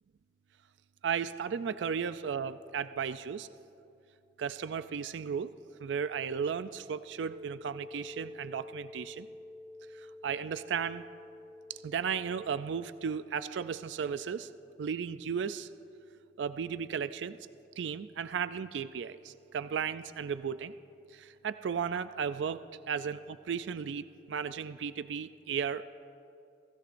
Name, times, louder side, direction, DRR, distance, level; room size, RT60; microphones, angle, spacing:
voice 1, 1.0-3.5 4.4-5.5 5.8-9.3 9.9-11.0 11.7-14.5 14.8-15.7 16.4-17.4 17.8-20.7 21.1-25.8, right 7 dB, 75° right, 13 dB, 0.4 m, -35 dB
sound 1, 7.3-13.1, left 2 dB, 55° right, 1.1 m, -49 dB
30.0 x 16.5 x 2.6 m, 2.6 s
head